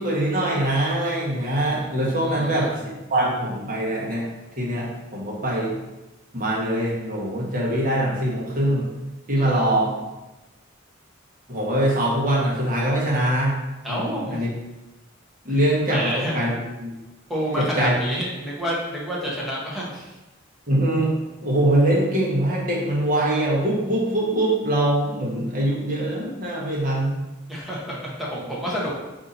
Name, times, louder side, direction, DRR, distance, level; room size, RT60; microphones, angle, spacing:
voice 1, 0.0-2.8 3.1-4.3 4.6-5.7 6.3-8.9 9.3-9.9 11.5-13.5 13.9-14.5 15.4-16.5 16.8-16.9 17.5-17.9 20.7-21.1 21.4-27.2, right 1 dB, 40° right, -4 dB, 1.1 m, -23 dB
voice 2, 2.2-2.8 9.4-10.0 13.8-14.4 15.5-15.6 15.9-16.4 17.3-20.1 27.5-28.9, equal, ahead, -6 dB, 0.9 m, -29 dB
4.2 x 2.8 x 3.9 m, 1.0 s
head